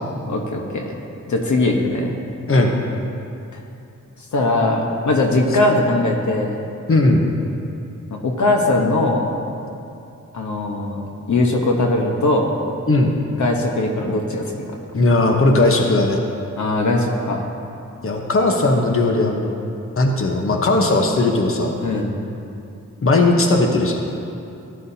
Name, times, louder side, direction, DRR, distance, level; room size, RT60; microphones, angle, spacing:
voice 1, 0.3-1.0 1.3-2.2 4.3-6.6 8.1-9.3 10.3-11.0 11.3-12.5 13.4-14.5 16.6-17.5 21.8-22.1, left 2 dB, 70° left, 1 dB, 1.1 m, -20 dB
voice 2, 2.5-2.8 6.9-7.3 12.9-13.2 14.9-16.2 18.0-19.6 20.0-21.7 23.0-24.0, left 2 dB, 45° left, 2 dB, 1.1 m, -17 dB
14.0 x 10.5 x 2.8 m, 2.6 s
wide cardioid pair, 85°, 30 cm